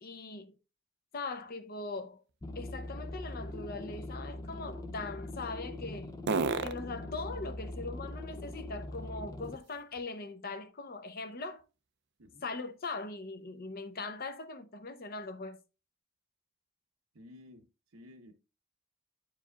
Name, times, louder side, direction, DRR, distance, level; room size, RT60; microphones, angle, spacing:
voice 1, 0.0-0.5 1.1-2.2 2.5-6.1 6.6-11.6 12.4-15.6, left 3 dB, 45° left, 0.7 m, -41 dB
sound 1, 1.3-10.3 10.8-14.6, right 4 dB, 55° right, 0.5 m, -43 dB
sound 2, 2.4-9.6, left 2 dB, 15° left, 0.4 m, -42 dB
voice 2, 17.1-18.3, left 1 dB, 75° right, 0.9 m, -54 dB
10.0 x 4.8 x 2.3 m
head